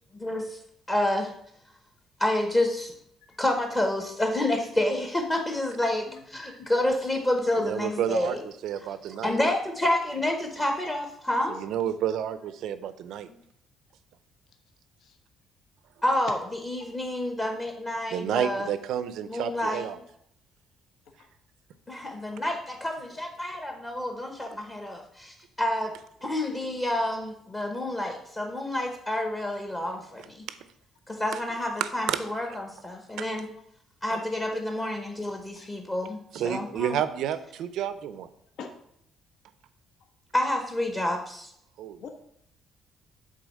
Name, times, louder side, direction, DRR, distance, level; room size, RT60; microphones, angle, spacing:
voice 1, 0.2-0.6 0.9-1.3 2.2-2.9 3.4-8.4 9.2-11.6 16.0-18.7 19.3-19.8 21.9-25.9 26.2-30.4 31.1-33.5 34.0-36.2 36.4-37.0 40.3-41.5, left 1 dB, 20° left, 2 dB, 0.9 m, -28 dB
voice 2, 6.1-6.2 8.2-8.4 15.0-15.2 21.2-21.3 35.5-35.7 38.6-38.7 42.0-42.1, left 6 dB, 70° left, 5 dB, 1.0 m, -43 dB
voice 3, 7.6-9.3 11.5-13.3 18.1-20.0 29.9-30.0 30.5-30.6 31.8-32.2 33.2-33.3 36.3-38.3 41.8-42.0, right 10 dB, 75° right, 12 dB, 0.6 m, -30 dB
8.3 x 3.9 x 6.3 m, 0.70 s
cardioid pair, 155°, 0 cm